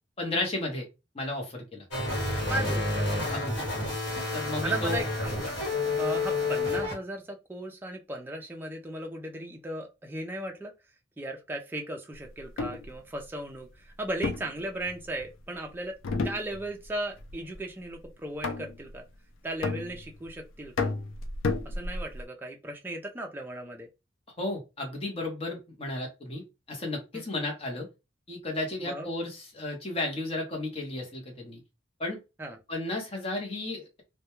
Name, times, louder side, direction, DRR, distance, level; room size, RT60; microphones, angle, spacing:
voice 1, 0.2-0.9 1.1-1.8 3.3-3.7 4.3-5.0 24.4-26.4 26.7-27.9 28.3-31.6 32.0-32.2 32.7-34.0, left 2 dB, 30° left, 0.7 m, -33 dB
sound 1, 1.9-6.9, left 2 dB, 60° left, 1.1 m, -29 dB
voice 2, 2.5-3.1 4.6-5.4 6.0-10.7 11.2-16.0 16.2-19.1 19.4-20.9 21.6-23.9 27.1-27.2 28.8-29.1 32.4-32.6, right 1 dB, 10° right, 0.3 m, -36 dB
sound 2, 12.4-12.9 14.2-15.3 16.0-16.9 17.2-17.6 18.4-18.9 19.6-20.3 20.8-22.2, left 3 dB, 75° left, 0.4 m, -32 dB
2.1 x 2.1 x 2.9 m
head